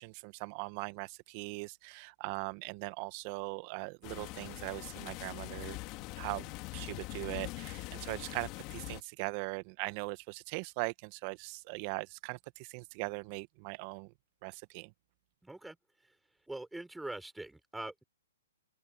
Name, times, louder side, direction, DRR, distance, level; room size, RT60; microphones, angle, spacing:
voice 1, 0.0-5.8 6.2-14.1 14.4-14.9, right 26 dB, 35° right, 1.3 m, -40 dB
sound 1, 4.0-9.0, left 22 dB, 30° left, 2.4 m, -43 dB
voice 2, 15.4-15.8 16.5-18.0, right 2 dB, 5° right, 6.0 m, -43 dB
open air
hypercardioid pair, 140°, 0 cm